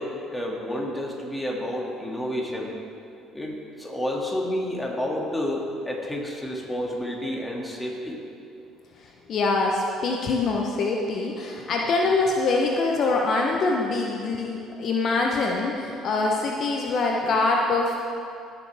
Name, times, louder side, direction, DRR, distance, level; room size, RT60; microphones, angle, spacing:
voice 1, 0.0-2.7 3.3-8.2, left 1 dB, 5° left, -2 dB, 2.4 m, -30 dB
voice 2, 9.0-17.9, left 3 dB, 55° left, 0 dB, 1.0 m, -24 dB
18.0 x 6.9 x 3.6 m, 2.5 s
supercardioid pair, 70°, 0 cm